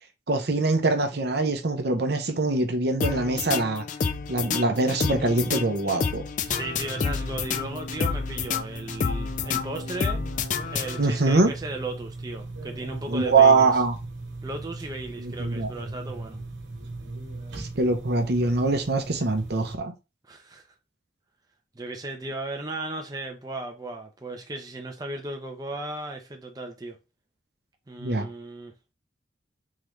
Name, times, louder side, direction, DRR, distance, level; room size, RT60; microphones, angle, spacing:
voice 1, 0.3-3.8 4.3-6.2 11.0-11.5 13.1-14.0 15.2-15.7 17.6-19.9 28.0-28.3, right 3 dB, 60° right, 0.7 m, -23 dB
sound 1, 3.0-11.3, left 5 dB, 45° left, 0.4 m, -29 dB
voice 2, 6.4-10.3 10.7-13.8 14.4-16.4 20.2-20.6 21.7-27.0 27.9-28.7, right 2 dB, 20° right, 0.6 m, -36 dB
sound 2, 6.5-19.8, right 2 dB, 85° right, 1.0 m, -39 dB
3.7 x 3.2 x 3.2 m
head